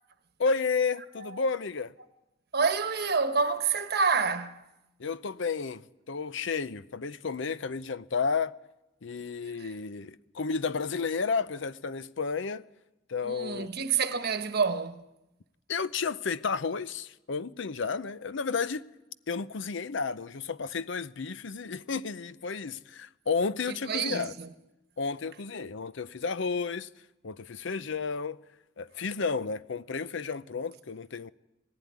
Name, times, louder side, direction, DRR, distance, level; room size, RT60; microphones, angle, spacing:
voice 1, 0.4-1.9 5.0-8.5 9.0-12.6 13.1-13.7 15.7-18.8 19.3-24.3 25.0-26.9 27.2-28.4 28.8-31.3, left 5 dB, 60° left, 0.6 m, -32 dB
voice 2, 2.5-4.6 9.6-9.7 13.2-15.0 23.8-24.5, right 5 dB, 50° right, 1.2 m, -28 dB
19.5 x 15.5 x 9.4 m
head